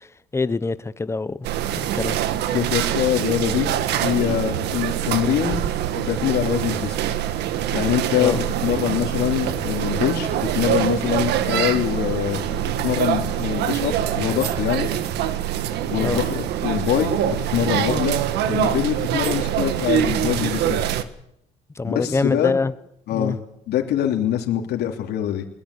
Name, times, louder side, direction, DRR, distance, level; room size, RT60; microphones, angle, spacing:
voice 1, 0.3-1.4 1.7-2.2 8.2-8.4 16.0-16.2 21.8-22.7 23.1-23.4, left 3 dB, 15° left, 1.1 m, -24 dB
sound 1, 1.4-21.0, right 11 dB, 80° right, 1.7 m, -24 dB
voice 2, 2.5-5.6 5.9-7.0 7.7-14.9 15.9-18.2 18.5-20.8 21.8-22.6 23.1-23.4 23.7-25.5, left 11 dB, 75° left, 3.0 m, -24 dB
21.5 x 17.5 x 8.4 m
cardioid pair, 110°, 17 cm